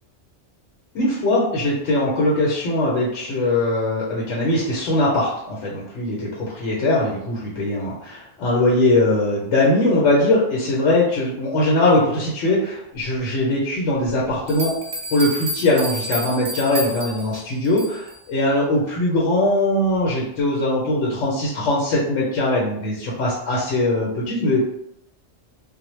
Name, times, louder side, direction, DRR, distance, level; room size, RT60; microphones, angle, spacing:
voice 1, 0.9-14.8 15.1-24.6, left 1 dB, 75° left, -4 dB, 0.9 m, -21 dB
sound 1, 14.5-18.2, equal, 60° right, 0.9 m, -31 dB
2.1 x 2.1 x 3.0 m, 0.77 s
omnidirectional pair, 1.3 m